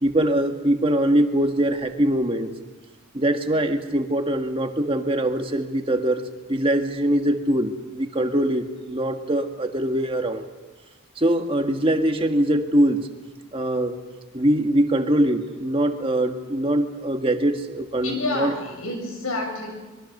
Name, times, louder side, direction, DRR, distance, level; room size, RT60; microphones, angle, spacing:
voice 1, 0.0-2.5 3.1-6.2 6.5-10.4 11.2-13.1 13.5-14.0 14.3-18.5, right 1 dB, 25° right, 5 dB, 1.7 m, -22 dB
voice 2, 18.0-19.7, left 2 dB, 80° left, 3 dB, 6.9 m, -28 dB
25.5 x 22.5 x 6.6 m, 1.2 s
head